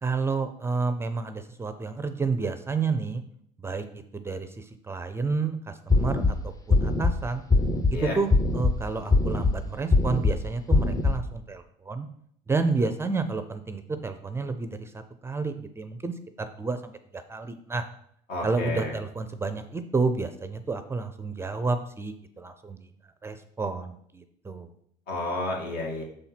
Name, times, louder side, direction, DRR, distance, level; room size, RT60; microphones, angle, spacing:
voice 1, 0.0-3.2 3.6-6.2 6.7-7.4 8.0-12.1 12.5-16.1 16.4-17.8 18.4-22.8 23.2-24.7, right 4 dB, 15° right, 9 dB, 0.5 m, -30 dB
sound 1, 5.9-6.3 6.7-7.1 7.5-7.9 8.3-8.7 9.1-9.5 9.9-10.3 10.7-11.1, left 3 dB, 20° left, 0.7 m, -21 dB
voice 2, 18.3-18.9 25.1-26.0, left 2 dB, 70° left, -1 dB, 2.2 m, -31 dB
6.5 x 4.3 x 5.8 m, 0.68 s
cardioid pair, 115°, 16 cm